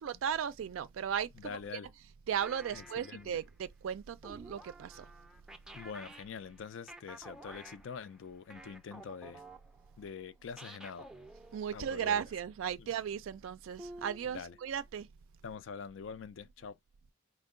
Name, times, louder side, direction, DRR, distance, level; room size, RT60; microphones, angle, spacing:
voice 1, 0.0-1.6 2.3-5.1 11.5-15.1, right 8 dB, 75° right, 0.3 m, -36 dB
voice 2, 1.3-1.9 2.7-3.4 5.7-9.4 10.0-11.1 11.7-12.2 12.8-12.9 14.3-14.6 15.4-16.8, left 6 dB, 65° left, 0.4 m, -45 dB
sound 1, 2.4-3.4 4.2-10.2 10.6-11.9 13.8-14.7, right 1 dB, 5° right, 0.4 m, -52 dB
4.4 x 2.0 x 3.6 m
head